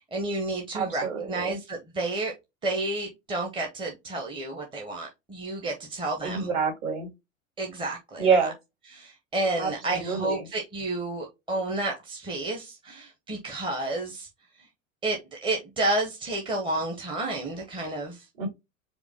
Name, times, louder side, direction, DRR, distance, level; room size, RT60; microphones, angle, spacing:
voice 1, 0.1-2.3 2.6-6.5 7.6-8.5 8.9-14.3 15.0-18.2, right 2 dB, 10° right, 0.9 m, -31 dB
voice 2, 0.7-1.6 6.2-7.1 8.2-8.5 9.6-10.5 18.4-18.5, right 5 dB, 45° right, 2.4 m, -27 dB
4.9 x 2.3 x 3.4 m
figure-of-eight pair, 85°, 40 cm